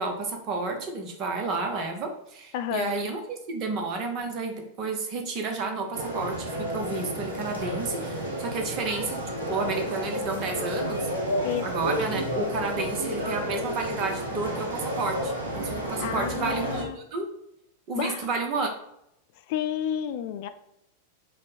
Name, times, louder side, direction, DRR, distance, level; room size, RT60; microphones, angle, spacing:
voice 1, 0.0-9.2 9.5-11.1 11.6-17.3 17.9-18.7, right 3 dB, 35° right, 4 dB, 0.9 m, -31 dB
voice 2, 2.5-2.9 11.4-11.7 16.0-17.0 18.0-18.3 19.5-20.5, left 10 dB, 50° left, 9 dB, 0.3 m, -30 dB
sound 1, 5.9-16.8, equal, 70° right, 1.1 m, -31 dB
5.0 x 2.2 x 4.0 m, 0.80 s
figure-of-eight pair, 90°, 0 cm